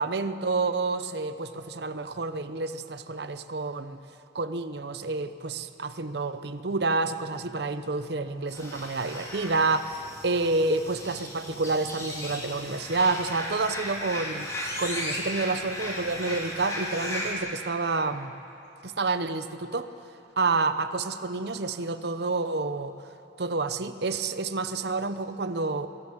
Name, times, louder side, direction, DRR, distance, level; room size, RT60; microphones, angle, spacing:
voice 1, 0.0-4.0 4.3-18.4 18.8-19.9 20.4-23.0 23.4-25.9, right 3 dB, 60° right, 11 dB, 0.8 m, -29 dB
sound 1, 8.5-17.3, left 1 dB, 15° left, 3.2 m, -36 dB
23.0 x 14.5 x 7.9 m, 2.9 s
head